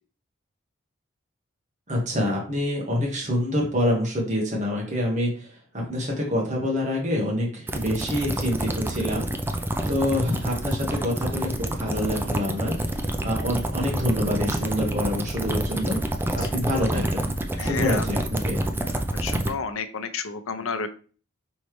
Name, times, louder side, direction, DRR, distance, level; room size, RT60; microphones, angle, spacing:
voice 1, 1.9-5.5 5.7-9.3 9.9-12.7 13.2-16.0 16.3-17.3 17.6-18.6, left 1 dB, 35° right, -2 dB, 1.2 m, -26 dB
sound 1, 7.7-19.5, right 1 dB, 10° right, 0.3 m, -28 dB
voice 2, 17.6-18.0 19.1-20.9, left 5 dB, 85° left, 9 dB, 0.6 m, -31 dB
5.4 x 3.1 x 3.1 m, 0.39 s
head